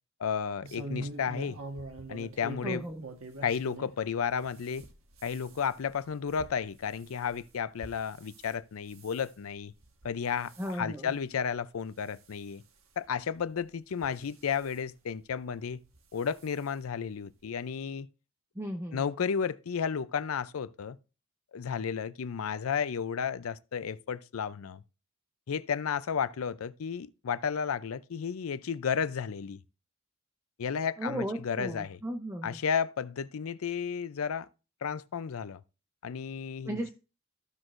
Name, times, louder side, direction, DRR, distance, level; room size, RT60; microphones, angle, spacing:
voice 1, 0.2-1.6 2.1-2.8 3.4-4.8 5.2-9.7 10.0-12.6 13.0-15.8 16.1-18.1 18.9-21.0 21.5-24.8 25.5-29.6 30.6-32.0 32.4-34.5 34.8-35.6 36.0-36.9, left 7 dB, 85° left, 0.5 m, -33 dB
sound 1, 0.6-4.0 4.4-8.5 8.9-9.3 9.8-10.2 10.4-10.7 11.4-11.5 11.8-11.9 13.0-13.1 13.9-14.7 15.9-16.1 16.4-16.5 16.8-16.9, right 2 dB, 80° right, 1.3 m, -44 dB
voice 2, 2.6-3.0 10.6-11.1 18.6-19.0 31.0-32.6 36.6-36.9, equal, 15° right, 0.7 m, -35 dB
14.5 x 6.1 x 2.5 m
head